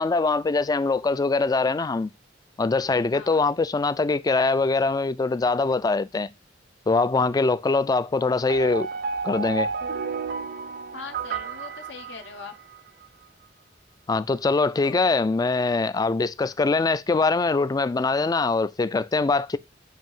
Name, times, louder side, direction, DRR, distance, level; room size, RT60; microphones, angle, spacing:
voice 1, 0.0-2.1 2.6-6.3 6.9-8.9 9.2-9.7 14.1-19.6, left 3 dB, 20° left, 0.3 m, -23 dB
sound 1, 8.5-12.8, right 5 dB, 55° right, 0.5 m, -32 dB
voice 2, 10.9-12.5 14.8-15.0, left 5 dB, 75° left, 0.7 m, -41 dB
7.4 x 2.6 x 5.4 m
head